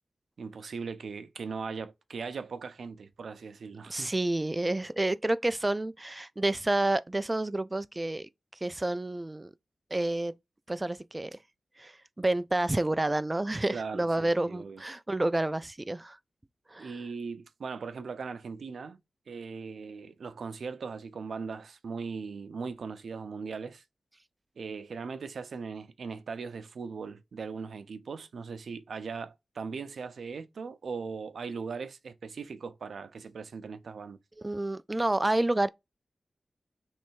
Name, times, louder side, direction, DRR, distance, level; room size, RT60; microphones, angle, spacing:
voice 1, 0.4-4.1 13.7-14.8 16.8-19.0 19.3-23.8 24.6-34.2, right 5 dB, 80° right, 0.5 m, -39 dB
voice 2, 3.9-8.3 8.6-9.5 9.9-10.3 10.7-11.4 11.8-16.2 16.7-16.9 34.4-35.7, right 2 dB, 20° right, 0.3 m, -29 dB
3.3 x 3.2 x 4.5 m
wide cardioid pair, 120°, 0 cm